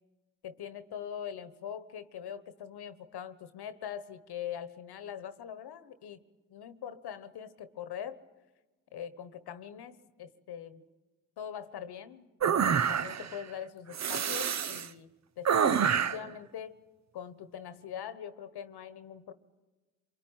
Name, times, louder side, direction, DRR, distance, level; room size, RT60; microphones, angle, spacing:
voice 1, 0.4-6.2 6.5-8.2 8.9-10.8 11.4-12.3 12.5-16.7 17.1-19.3, left 9 dB, 70° left, 13 dB, 1.3 m, -42 dB
sound 1, 12.4-13.4 13.9-14.9 15.4-16.3, right 7 dB, 40° right, 0.8 m, -27 dB
24.5 x 23.0 x 9.0 m, 1.2 s
supercardioid pair, 50°, 40 cm